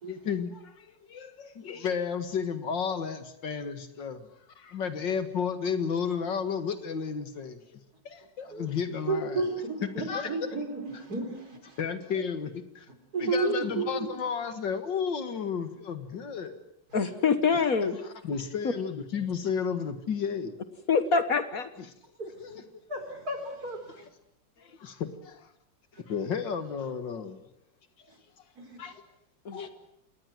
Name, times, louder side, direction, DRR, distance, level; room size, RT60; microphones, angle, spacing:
voice 1, 0.0-4.3 4.6-9.4 10.0-10.3 11.8-12.9 13.2-16.6 17.5-17.6 18.0-20.6 21.8-21.9 22.4-22.6 24.6-25.5 26.1-27.4 28.8-28.9 29.5-29.7, left 6 dB, 80° left, 10 dB, 2.5 m, -33 dB
voice 2, 9.1-11.8 13.1-14.1 22.2-22.6 22.9-24.1 25.9-26.0 28.1-28.2 28.6-28.8 29.6-29.7, right 3 dB, 55° right, 6 dB, 4.8 m, -32 dB
voice 3, 16.9-18.0 20.9-21.7 29.4-29.7, left 5 dB, 55° left, 11 dB, 1.7 m, -25 dB
27.0 x 20.0 x 7.8 m, 0.73 s
omnidirectional pair, 2.0 m